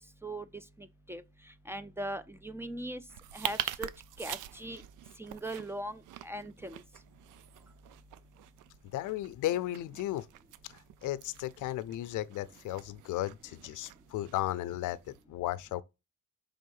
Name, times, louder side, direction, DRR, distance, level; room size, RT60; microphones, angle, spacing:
voice 1, 0.2-3.0 3.3-3.9 4.2-4.8 5.2-6.8, right 1 dB, 10° right, 0.4 m, -40 dB
sound 1, 3.1-15.2, right 13 dB, 85° right, 0.5 m, -45 dB
voice 2, 8.9-10.3 10.7-15.0 15.3-15.8, left 14 dB, 80° left, 0.5 m, -35 dB
5.6 x 3.6 x 5.4 m
cardioid pair, 110°, 30 cm